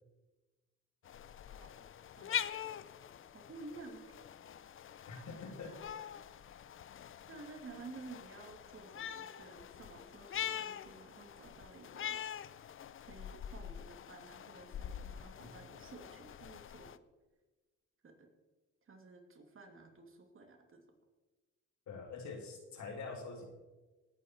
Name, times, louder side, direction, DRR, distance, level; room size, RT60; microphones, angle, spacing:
sound 1, 1.0-17.0, left 9 dB, 45° left, 0.6 m, -44 dB
voice 1, 1.5-2.5 3.3-4.1 7.3-12.2 13.0-17.0 18.0-18.3 18.9-20.8, right 3 dB, 45° right, 4 dB, 2.7 m, -53 dB
voice 2, 5.1-5.8 21.9-23.5, left 4 dB, 70° left, 3 dB, 2.8 m, -45 dB
19.0 x 9.3 x 4.5 m, 1.2 s
cardioid pair, 90°, 30 cm